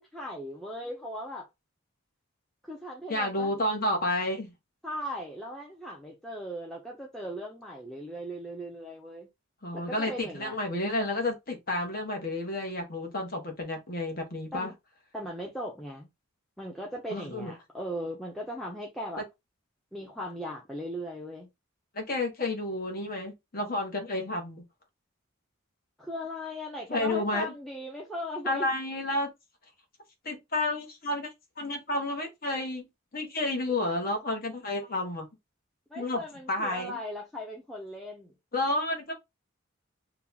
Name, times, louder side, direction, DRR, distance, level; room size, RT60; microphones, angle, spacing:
voice 1, 0.0-1.5 2.6-3.5 4.8-9.3 9.7-10.6 14.5-14.7 15.1-16.1 16.6-19.3 19.9-21.5 26.0-28.7 35.9-38.3, equal, ahead, 0.7 m, -38 dB
voice 2, 3.1-4.5 9.6-14.7 17.1-17.5 21.9-24.6 26.9-27.5 28.4-29.3 30.2-31.3 31.6-32.9 33.1-35.3 35.9-36.2 36.5-37.0 38.5-39.1, left 2 dB, 45° left, 1.1 m, -31 dB
3.0 x 2.2 x 3.8 m
head